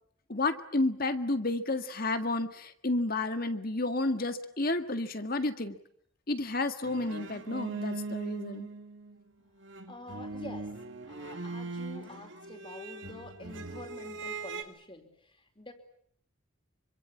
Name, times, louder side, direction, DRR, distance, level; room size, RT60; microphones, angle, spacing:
voice 1, 0.3-5.8 6.3-8.7, left 2 dB, 45° left, 9 dB, 1.8 m, -31 dB
sound 1, 6.8-9.3 9.6-14.6, right 3 dB, 60° right, 2.7 m, -40 dB
voice 2, 9.9-10.7 11.1-15.7, left 1 dB, 25° left, 6 dB, 4.4 m, -47 dB
26.5 x 25.5 x 8.6 m, 0.66 s
head